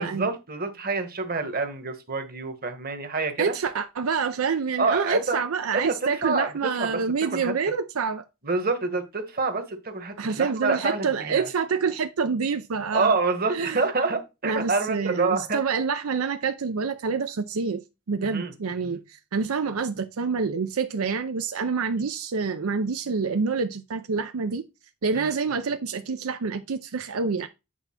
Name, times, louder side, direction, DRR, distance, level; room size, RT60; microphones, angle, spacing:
voice 1, 0.0-3.5 4.8-5.4 5.7-6.5 6.8-7.5 8.4-11.5 12.9-15.6 18.2-18.5 18.8-19.0 25.1-25.3, right 3 dB, 45° right, 1.3 m, -27 dB
voice 2, 3.4-8.2 10.2-13.2 13.5-13.8 14.4-17.8 18.1-24.7 25.0-27.5, right 5 dB, 80° right, 0.5 m, -27 dB
8.3 x 3.3 x 5.8 m
head